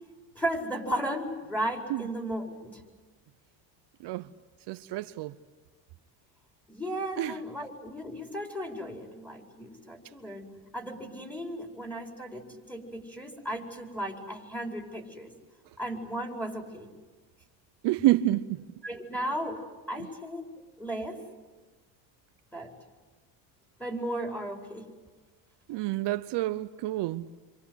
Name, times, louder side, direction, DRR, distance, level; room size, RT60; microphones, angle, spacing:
voice 1, 0.4-2.8 6.7-10.5 10.7-15.3 15.8-16.9 18.8-19.6 19.9-20.4 20.8-21.2 22.5-22.7 23.8-24.9, right 1 dB, 5° left, 5.2 m, -35 dB
voice 2, 4.7-5.4 7.2-7.3 17.8-18.6 25.7-27.3, right 16 dB, 60° right, 0.9 m, -28 dB
28.0 x 25.5 x 8.2 m
cardioid pair, 105°, 46 cm